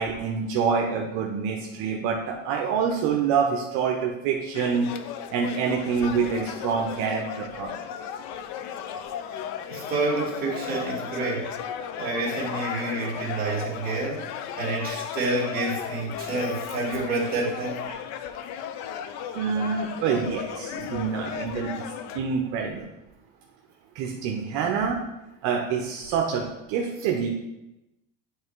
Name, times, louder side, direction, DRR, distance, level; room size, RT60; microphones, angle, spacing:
voice 1, 0.0-4.9 5.3-7.7 19.3-21.7 22.1-22.8 23.9-25.0 25.4-27.3, right 6 dB, 65° right, 0 dB, 0.9 m, -26 dB
sound 1, 4.5-22.2, left 9 dB, 60° left, 0.6 m, -35 dB
voice 2, 9.7-11.5 12.0-17.8, right 3 dB, 30° right, -4 dB, 2.0 m, -28 dB
8.7 x 3.3 x 4.6 m, 0.94 s
cardioid pair, 155°, 31 cm